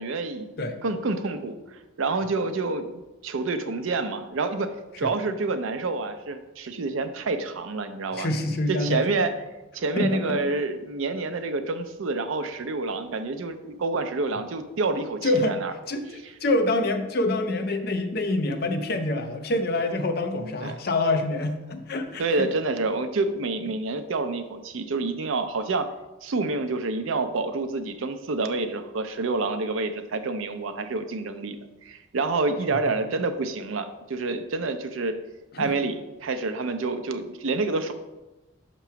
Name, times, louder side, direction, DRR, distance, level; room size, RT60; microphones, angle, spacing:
voice 1, 0.0-1.6 2.0-4.7 5.0-8.3 8.7-9.3 9.7-15.7 20.4-20.8 22.2-25.9 26.2-31.6 31.8-35.2 35.6-37.9, right 3 dB, 80° right, 9 dB, 0.5 m, -28 dB
voice 2, 8.1-9.0 10.0-10.5 15.2-15.6 15.9-22.5 32.7-32.8 35.5-35.7, left 2 dB, 50° left, 6 dB, 0.5 m, -26 dB
5.8 x 3.0 x 5.7 m, 1.1 s
head